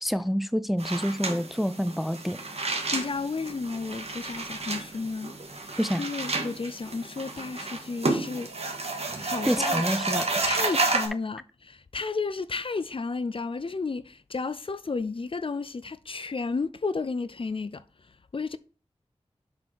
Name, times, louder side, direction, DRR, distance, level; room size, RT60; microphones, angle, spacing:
voice 1, 0.0-2.4 5.8-6.0 9.5-10.5, equal, ahead, 0.4 m, -27 dB
sound 1, 0.8-11.1, right 3 dB, 70° right, 1.6 m, -31 dB
voice 2, 2.8-8.5 9.2-9.8 10.4-18.6, left 4 dB, 55° left, 0.5 m, -33 dB
7.5 x 4.4 x 4.5 m
wide cardioid pair, 65°, 11 cm